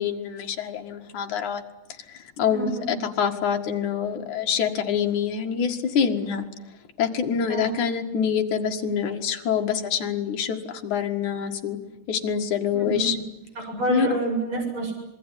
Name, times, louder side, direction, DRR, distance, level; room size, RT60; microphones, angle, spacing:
voice 1, 0.0-1.6 2.1-6.5 7.0-11.8 12.1-13.2 13.9-14.1, left 7 dB, 65° left, 4 dB, 3.3 m, -26 dB
voice 2, 2.5-2.9 7.5-7.7 12.7-13.1 13.6-14.9, right 2 dB, 40° right, 2 dB, 7.9 m, -28 dB
26.0 x 21.5 x 10.0 m, 0.91 s
omnidirectional pair, 3.7 m